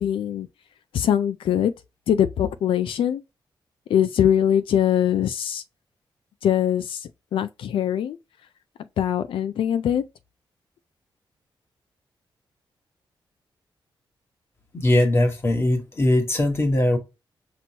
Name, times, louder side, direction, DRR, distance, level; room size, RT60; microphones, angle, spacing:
voice 1, 0.0-0.5 0.9-1.7 2.1-3.2 3.9-5.6 6.4-8.2 9.0-10.0, left 9 dB, 90° left, 0.4 m, -22 dB
voice 2, 14.7-17.0, left 1 dB, 30° left, 1.3 m, -20 dB
6.0 x 3.0 x 2.8 m
wide cardioid pair, 155°, 9 cm